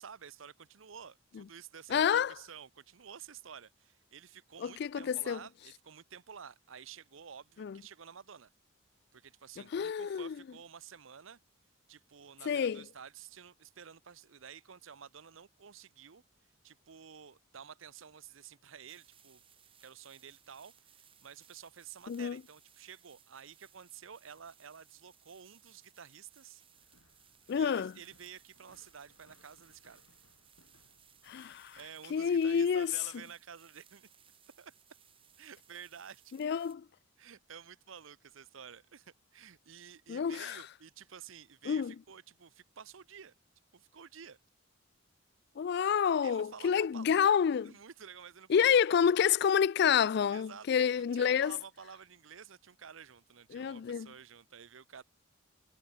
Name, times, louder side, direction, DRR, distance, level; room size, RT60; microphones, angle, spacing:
voice 1, 0.0-8.5 9.1-11.4 11.9-16.2 16.6-19.4 19.8-20.8 21.2-26.6 27.6-30.0 31.8-34.1 34.6-34.7 35.4-36.3 37.2-43.3 43.7-44.4 46.2-47.1 47.6-48.8 50.3-55.0, right 7 dB, 75° right, 0.8 m, -51 dB
voice 2, 1.9-2.3 4.6-5.4 7.6-7.8 9.7-10.4 12.5-12.8 22.1-22.4 27.5-27.9 31.3-31.8 32.1-32.9 36.4-36.8 40.1-40.6 41.7-41.9 45.6-47.7 48.5-51.6 53.5-54.1, left 7 dB, 55° left, 0.3 m, -28 dB
sound 1, 18.9-36.8, right 9 dB, 25° right, 4.2 m, -64 dB
sound 2, 26.7-31.9, left 2 dB, 75° left, 5.4 m, -68 dB
head